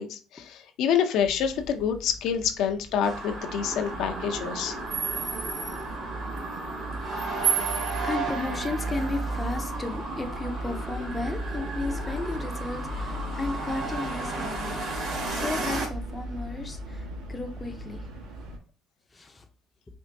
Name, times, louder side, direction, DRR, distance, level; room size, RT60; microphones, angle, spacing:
voice 1, 0.0-4.8, left 8 dB, 70° left, 5 dB, 0.5 m, -27 dB
sound 1, 1.2-18.6, right 1 dB, 80° right, 1.1 m, -38 dB
sound 2, 3.0-15.9, right 3 dB, 50° right, 1.2 m, -33 dB
voice 2, 8.0-18.1 19.1-19.5, left 3 dB, 15° left, 4 dB, 0.5 m, -34 dB
4.4 x 2.5 x 2.6 m, 0.38 s
cardioid pair, 130°, 0 cm